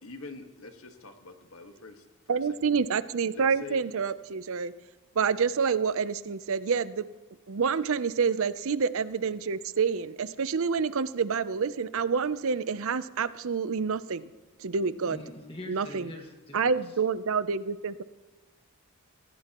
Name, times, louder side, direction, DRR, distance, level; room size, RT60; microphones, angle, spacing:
voice 1, 0.0-2.8 3.3-3.8, left 3 dB, 70° left, 6 dB, 1.6 m, -46 dB
voice 2, 2.3-4.7 5.2-7.1 7.5-14.3 14.6-15.2 15.7-16.1 16.5-18.0, right 5 dB, 65° right, 15 dB, 0.6 m, -28 dB
voice 3, 15.1-16.7, left 1 dB, 25° left, 1 dB, 1.8 m, -43 dB
24.5 x 17.0 x 3.0 m, 1.2 s
head